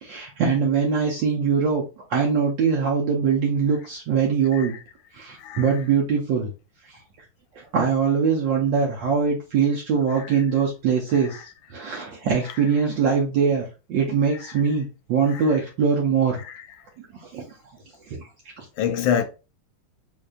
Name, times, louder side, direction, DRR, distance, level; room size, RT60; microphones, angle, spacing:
voice 1, 0.0-1.8 2.1-4.8 5.1-6.5 6.9-7.0 7.6-11.4 11.7-16.4 17.2-17.4 18.1-18.2 18.6-18.7, right 6 dB, 70° right, 1.3 m, -22 dB
voice 2, 4.5-4.8 5.4-5.9 10.1-10.4 11.1-11.4 12.4-12.8 14.3-14.6 15.3-15.6 16.4-16.7 18.8-19.2, left 8 dB, 75° left, 1.3 m, -29 dB
4.0 x 2.8 x 2.2 m
omnidirectional pair, 2.3 m